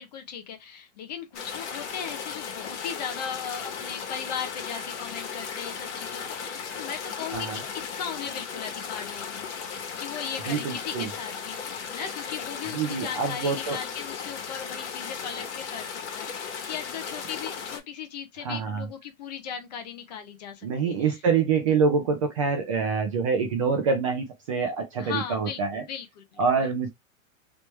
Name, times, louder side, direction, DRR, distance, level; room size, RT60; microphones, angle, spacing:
voice 1, 0.0-9.5 10.0-21.2 25.0-26.7, left 8 dB, 30° left, 0.5 m, -38 dB
sound 1, 1.3-17.8, left 6 dB, 55° left, 1.3 m, -36 dB
voice 2, 10.5-11.1 12.7-13.8 18.4-18.9 20.6-25.8 26.4-26.9, right 5 dB, 25° right, 0.4 m, -26 dB
3.3 x 3.1 x 3.1 m
supercardioid pair, 170°, 42 cm